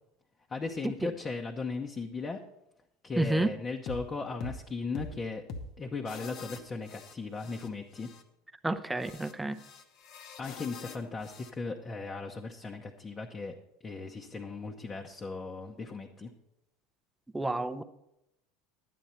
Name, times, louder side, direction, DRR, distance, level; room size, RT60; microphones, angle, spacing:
voice 1, 0.5-2.4 3.0-5.4 5.8-8.1 10.4-13.6 13.8-16.3, left 4 dB, 25° left, 1 dB, 0.9 m, -37 dB
voice 2, 3.2-3.5 8.6-9.6 17.3-17.8, right 2 dB, 10° right, 11 dB, 0.7 m, -30 dB
sound 1, 3.9-4.0 4.4-4.6 4.9-5.1 5.5-5.7 6.0-7.7 7.9-8.2 9.0-11.5, left 4 dB, 50° left, 1.0 m, -44 dB
11.0 x 9.4 x 4.3 m, 0.83 s
hypercardioid pair, 75°, 0 cm